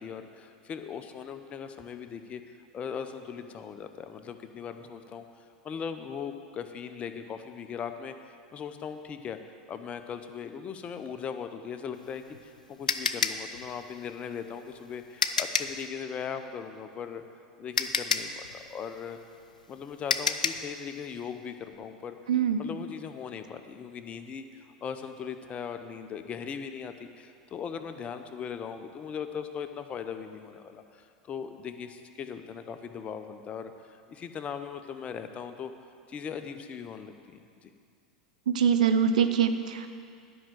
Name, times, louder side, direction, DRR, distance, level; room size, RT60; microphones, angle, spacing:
voice 1, 0.0-2.4 2.7-5.2 5.6-9.4 9.7-17.2 17.6-19.2 19.7-22.2 22.6-35.7 36.1-37.7, left 7 dB, 30° left, 8 dB, 0.8 m, -39 dB
sound 1, 12.0-15.8 17.2-17.3 17.8-20.7, left 5 dB, 90° left, 0.5 m, -30 dB
voice 2, 22.3-22.6 38.5-39.9, right 7 dB, 75° right, 8 dB, 0.7 m, -24 dB
11.0 x 5.8 x 7.8 m, 2.2 s
hypercardioid pair, 90°, 4 cm